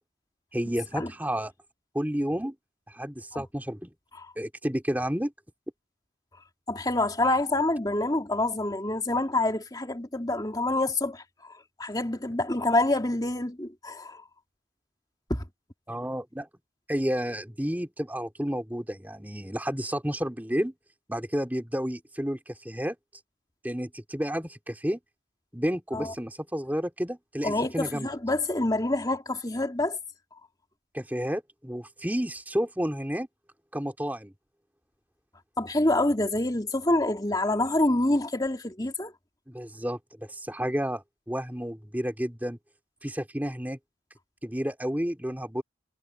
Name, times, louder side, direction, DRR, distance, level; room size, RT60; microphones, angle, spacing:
voice 1, 0.5-1.5 1.9-2.5 2.9-3.9 4.4-5.3 15.9-16.5 16.9-20.7 21.1-22.9 23.6-25.0 25.5-28.1 30.9-33.3 33.7-34.3 39.5-42.6 43.0-43.8 44.4-45.6, equal, 10° right, 2.7 m, -31 dB
voice 2, 6.7-11.5 11.8-14.2 15.3-15.4 25.9-26.1 27.4-30.0 35.6-39.1, left 2 dB, 20° left, 2.7 m, -27 dB
head